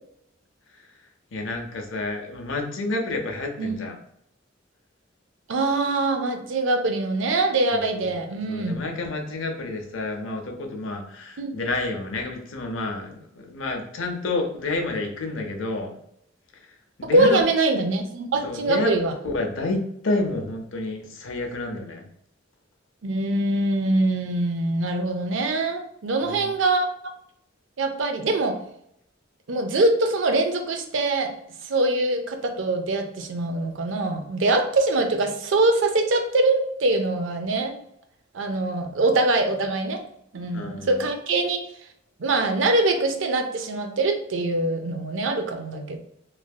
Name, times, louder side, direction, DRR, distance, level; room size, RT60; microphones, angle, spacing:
voice 1, 1.3-4.0 7.7-8.1 8.4-15.9 17.0-17.4 18.4-19.0 19.2-22.0 26.2-26.5 40.5-41.0, left 2 dB, 75° left, 2 dB, 0.6 m, -29 dB
voice 2, 5.5-8.8 11.4-11.6 17.0-19.1 23.0-26.9 27.8-28.6 29.5-31.3 31.6-37.7 38.3-40.0 40.3-41.6 42.2-46.0, right 2 dB, 70° right, 6 dB, 0.5 m, -23 dB
3.2 x 2.6 x 2.3 m, 0.74 s
head